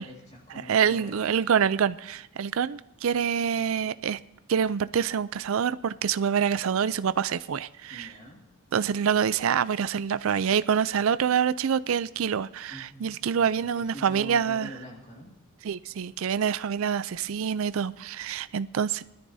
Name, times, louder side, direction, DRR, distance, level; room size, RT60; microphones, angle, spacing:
voice 1, 0.0-1.4 7.9-8.5 12.7-13.5 13.7-15.4, equal, 30° left, -2 dB, 2.0 m, -45 dB
voice 2, 0.7-4.2 4.5-8.1 8.7-14.7 15.6-19.0, right 7 dB, 70° right, 15 dB, 0.4 m, -26 dB
20.5 x 13.5 x 2.7 m, 0.93 s
head